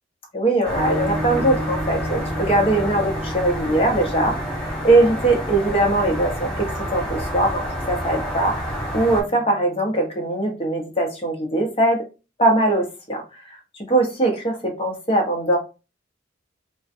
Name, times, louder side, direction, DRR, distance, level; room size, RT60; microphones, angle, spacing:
voice 1, 0.3-12.0 12.4-13.2 13.5-15.6, right 2 dB, 30° left, 1 dB, 0.7 m, -21 dB
sound 1, 0.6-9.2, equal, 5° left, 1.0 m, -29 dB
sound 2, 0.8-10.4, equal, 45° right, 0.8 m, -34 dB
2.4 x 2.2 x 2.5 m, 0.30 s
head